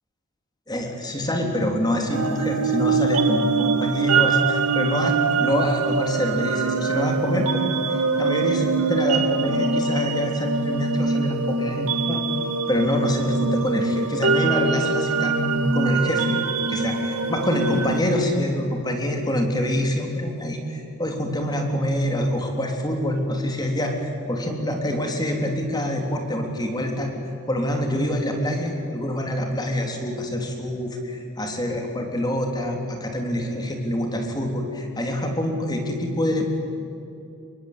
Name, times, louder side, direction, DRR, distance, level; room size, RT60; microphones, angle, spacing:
voice 1, 0.7-12.2 12.7-16.4 16.7-27.1 27.5-36.5, equal, 20° left, 3 dB, 3.5 m, -25 dB
sound 1, 2.1-18.0, right 4 dB, 85° right, 1.6 m, -23 dB
28.0 x 23.0 x 8.8 m, 2.8 s
head